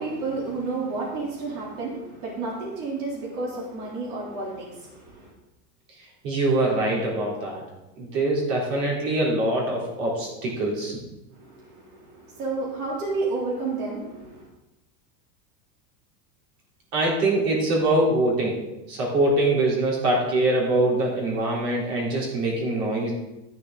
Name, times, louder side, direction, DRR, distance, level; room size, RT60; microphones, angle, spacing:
voice 1, 0.0-5.3 11.3-14.5, right 3 dB, 65° right, -4 dB, 3.5 m, -31 dB
voice 2, 6.0-7.6 8.0-11.0 16.9-18.6 18.9-23.1, right 2 dB, 85° right, -3 dB, 3.9 m, -23 dB
13.0 x 7.0 x 3.9 m, 0.99 s
supercardioid pair, 165°, 48 cm